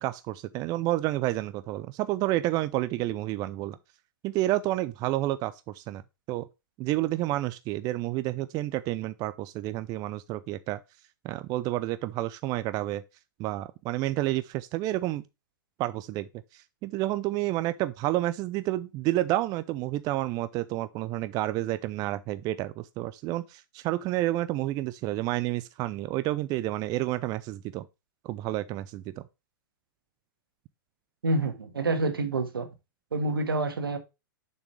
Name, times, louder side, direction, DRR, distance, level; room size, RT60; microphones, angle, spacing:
voice 1, 0.0-3.8 4.2-6.0 6.3-6.5 6.8-10.8 11.2-13.0 13.4-15.2 15.8-27.9 28.2-29.2, right 16 dB, 35° right, 0.5 m, -30 dB
voice 2, 31.2-32.7 33.1-34.0, right 2 dB, 90° right, 1.7 m, -27 dB
7.0 x 6.3 x 3.3 m
hypercardioid pair, 115°, 12 cm